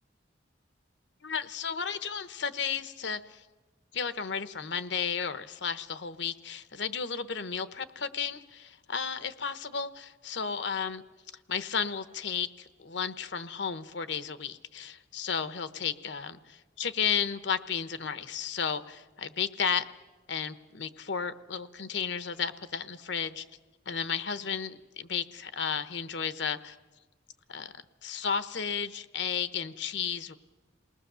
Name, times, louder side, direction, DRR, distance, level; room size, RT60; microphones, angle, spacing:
voice 1, 1.2-3.4 3.9-11.0 11.5-12.5 12.8-19.8 20.3-23.4 23.9-26.7 27.5-27.7 28.0-30.4, left 6 dB, 70° left, 12 dB, 0.9 m, -33 dB
28.0 x 19.5 x 6.8 m, 1.2 s
head